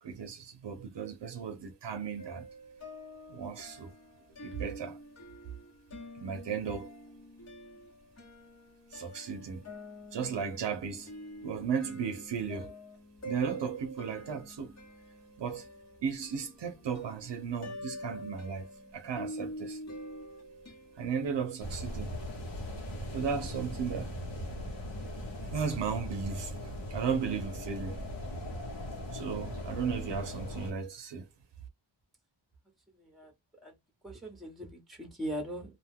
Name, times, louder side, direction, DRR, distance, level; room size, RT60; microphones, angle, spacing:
voice 1, 0.0-2.5 3.3-3.9 4.4-5.0 6.1-6.9 8.9-9.6 10.1-11.1 11.4-12.7 13.2-14.7 15.4-15.7 16.0-18.7 18.9-19.8 21.0-22.2 23.1-24.1 25.5-28.0 29.1-31.3, right 6 dB, 70° right, 0.7 m, -35 dB
sound 1, 2.2-21.1, equal, 35° left, 0.9 m, -46 dB
sound 2, 21.6-30.7, equal, 70° left, 1.2 m, -39 dB
voice 2, 33.0-33.3 33.6-33.7 34.0-35.8, equal, ahead, 0.9 m, -40 dB
2.4 x 2.2 x 3.4 m
wide cardioid pair, 115°, 45 cm